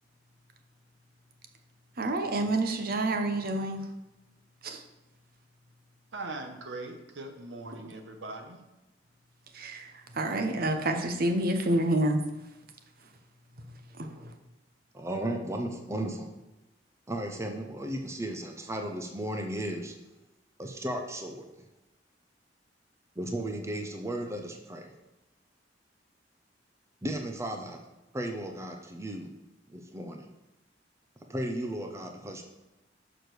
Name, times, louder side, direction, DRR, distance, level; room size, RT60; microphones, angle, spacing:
voice 1, 1.9-3.9 4.6-4.8 7.7-7.8 9.5-12.6 13.0-13.1 13.5-14.4, right 1 dB, 55° right, 6 dB, 0.9 m, -29 dB
voice 2, 6.1-8.6, right 2 dB, 80° right, 5 dB, 1.1 m, -40 dB
voice 3, 14.9-16.3 17.1-19.9 20.6-21.5 23.2-24.9 27.0-27.8 28.1-29.3 29.7-30.3 31.3-32.4, right 1 dB, 15° right, 4 dB, 0.6 m, -35 dB
6.5 x 5.0 x 6.1 m, 0.98 s
head